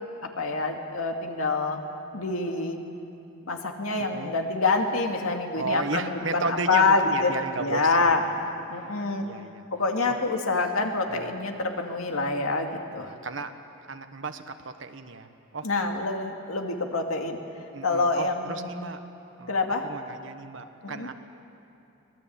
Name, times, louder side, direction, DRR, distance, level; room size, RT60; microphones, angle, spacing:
voice 1, 0.2-1.8 2.1-2.8 3.5-8.2 8.7-9.2 9.7-13.1 15.6-17.4 17.8-18.8 19.5-19.8 20.8-21.1, left 3 dB, 85° left, 3 dB, 2.4 m, -26 dB
voice 2, 4.0-4.3 5.5-8.3 9.2-9.6 10.1-10.2 11.1-11.3 13.0-13.6 13.8-15.7 17.7-19.0 19.4-21.1, right 3 dB, 60° right, 7 dB, 1.2 m, -34 dB
25.0 x 20.0 x 8.8 m, 2.8 s
head